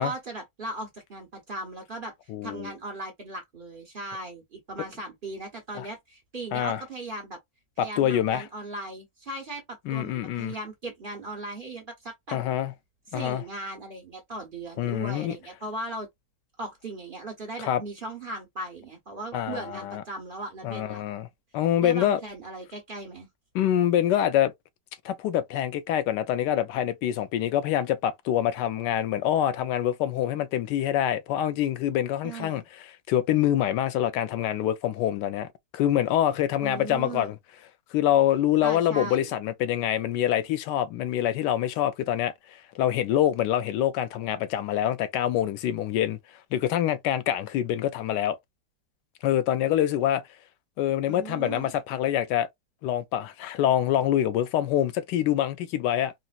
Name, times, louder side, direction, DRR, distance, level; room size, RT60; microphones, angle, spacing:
voice 1, 0.0-2.1 2.4-7.4 7.8-12.4 13.1-16.1 16.6-21.0 21.8-23.3 32.2-32.6 36.6-37.3 38.6-39.3 51.1-51.8, right 2 dB, 40° right, 1.0 m, -38 dB
voice 2, 2.3-2.7 5.8-5.9 6.5-6.8 7.8-8.4 9.9-10.5 12.3-12.7 13.1-13.4 14.8-15.4 17.7-17.8 19.3-20.0 20.6-21.3 21.5-22.2 23.5-24.5 25.0-32.6 33.1-35.5 35.7-37.4 37.9-46.2 46.5-48.4 49.2-50.2 50.8-52.5 52.8-56.1, left 11 dB, 85° left, 1.2 m, -25 dB
4.0 x 2.0 x 2.3 m
omnidirectional pair, 1.8 m